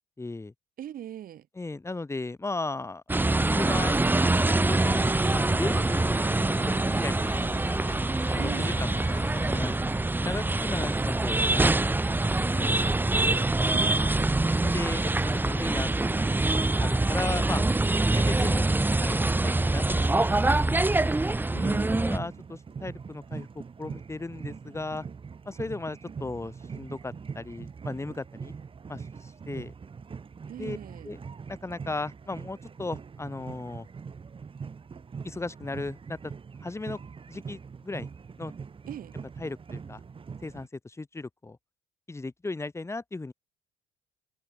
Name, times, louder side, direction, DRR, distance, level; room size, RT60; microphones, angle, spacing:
voice 1, 0.2-0.5 1.5-3.0 3.5-4.0 4.4-5.1 5.3-7.8 8.3-9.2 9.5-9.8 10.2-11.9 12.4-13.0 14.2-14.3 14.6-16.4 16.8-17.7 18.1-18.7 19.0-20.8 21.5-25.0 25.4-28.5 28.9-29.7 30.6-30.8 31.0-31.2 31.5-33.9 35.2-36.3 36.6-37.0 37.3-38.1 38.4-38.5 39.4-40.0 40.4-41.6 42.1-43.3, left 3 dB, 15° left, 5.8 m, -36 dB
voice 2, 0.8-1.5 8.4-8.8 13.7-14.1 21.5-22.2 30.5-31.1 38.9-39.1, right 11 dB, 55° right, 2.8 m, -40 dB
sound 1, 3.1-22.2, right 2 dB, 10° right, 1.7 m, -25 dB
sound 2, 4.7-9.7, left 8 dB, 45° left, 7.0 m, -46 dB
sound 3, 21.6-40.7, right 5 dB, 30° right, 6.1 m, -42 dB
cardioid pair, 110°, 17 cm